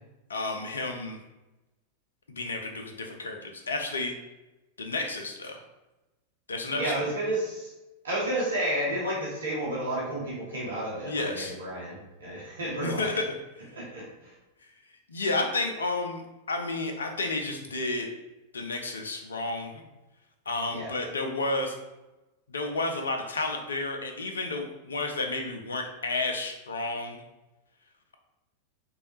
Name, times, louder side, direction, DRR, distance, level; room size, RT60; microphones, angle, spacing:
voice 1, 0.3-1.2 2.4-4.1 4.8-5.6 6.5-7.1 11.0-11.5 12.8-13.2 15.1-16.2 16.5-18.1 18.5-19.8 20.5-21.7 22.5-27.2, left 2 dB, 70° left, 3 dB, 0.4 m, -31 dB
voice 2, 6.7-7.7 8.0-13.2 13.7-14.3 20.7-20.9, right 1 dB, 65° right, -5 dB, 0.7 m, -31 dB
3.1 x 2.3 x 2.9 m, 1.0 s
figure-of-eight pair, 90°, 0 cm